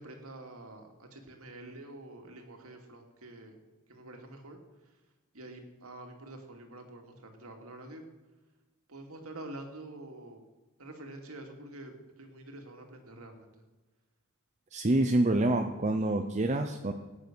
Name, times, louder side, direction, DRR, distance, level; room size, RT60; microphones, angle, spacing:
voice 1, 0.0-3.6 3.9-4.6 5.3-8.0 8.9-10.4 10.8-11.9 12.2-13.5, right 1 dB, 80° right, 3 dB, 2.6 m, -47 dB
voice 2, 14.7-16.9, right 1 dB, 30° right, 4 dB, 0.8 m, -27 dB
17.0 x 9.6 x 6.3 m, 1.2 s
head